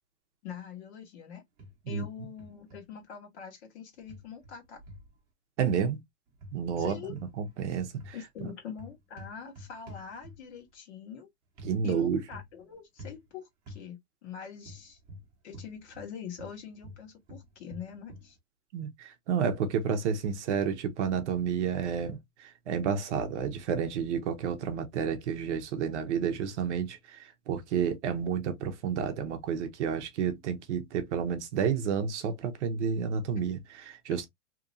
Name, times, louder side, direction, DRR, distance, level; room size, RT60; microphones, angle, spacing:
voice 1, 0.4-1.4 1.9-4.8 6.8-7.1 8.1-11.3 11.8-15.0 15.4-18.4, left 7 dB, 45° left, 1.3 m, -44 dB
sound 1, 1.6-2.1 2.4-2.8 4.1-5.1 6.3-7.3 7.6-10.6 11.6-11.7 12.3-12.6 13.0-13.2 13.7-13.8 14.6-16.1 16.4-18.3, left 1 dB, 20° right, 1.0 m, -47 dB
voice 2, 5.6-6.0 6.5-7.0 7.4-8.2 11.6-12.2 18.7-34.3, right 7 dB, 50° right, 0.7 m, -30 dB
2.9 x 2.5 x 2.5 m
supercardioid pair, 160°, 46 cm